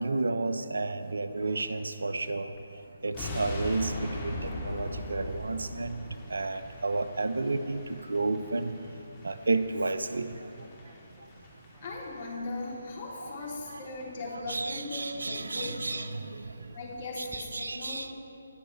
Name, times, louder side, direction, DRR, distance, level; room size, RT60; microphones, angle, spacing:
voice 1, 0.0-2.5 3.0-6.0 6.3-7.8 8.1-8.7 9.2-10.3 13.2-13.3 13.7-13.8 14.5-16.4 17.2-18.1, right 3 dB, 70° right, 11 dB, 0.6 m, -31 dB
sound 1, 1.0-17.4, right 1 dB, 10° right, 1.1 m, -57 dB
sound 2, 3.1-12.3 12.6-12.8 13.2-13.3 13.5-13.6 13.9-14.2 14.5-14.6, left 1 dB, 25° left, 2.2 m, -40 dB
voice 2, 11.8-16.1 16.7-18.1, left 2 dB, 45° left, -2 dB, 2.7 m, -38 dB
19.5 x 6.4 x 4.4 m, 2.8 s
figure-of-eight pair, 145°, 0 cm